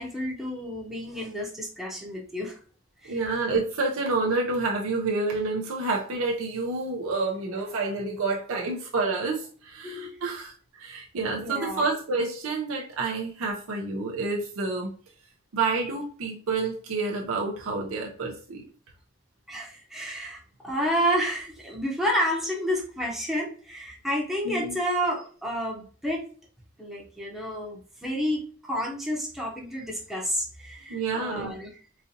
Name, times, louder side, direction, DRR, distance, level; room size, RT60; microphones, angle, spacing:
voice 1, 0.0-2.5 3.0-3.2 9.8-10.2 11.4-11.9 19.5-26.3 26.8-31.7, equal, ahead, -2 dB, 0.7 m, -30 dB
voice 2, 3.1-14.9 15.5-18.6 24.4-24.7 30.9-31.5, right 3 dB, 75° right, -1 dB, 0.6 m, -29 dB
4.0 x 2.5 x 2.7 m, 0.41 s
head